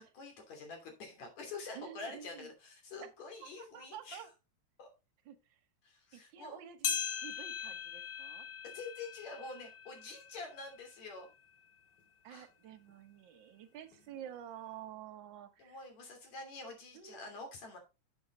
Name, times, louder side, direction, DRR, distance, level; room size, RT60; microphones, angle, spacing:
voice 1, 0.1-4.3 4.8-4.9 5.8-6.6 8.7-11.3 12.3-12.5 15.6-17.8, left 3 dB, 70° left, 3 dB, 4.1 m, -47 dB
voice 2, 1.7-2.5 3.6-4.3 5.2-5.4 6.1-8.5 12.2-15.8 16.9-17.2, right 10 dB, 55° right, 6 dB, 1.4 m, -50 dB
sound 1, 6.8-11.5 12.0-12.1 12.9-13.0 13.9-14.0, left 8 dB, 45° left, 2.0 m, -41 dB
7.9 x 7.2 x 4.1 m, 0.28 s
omnidirectional pair, 3.3 m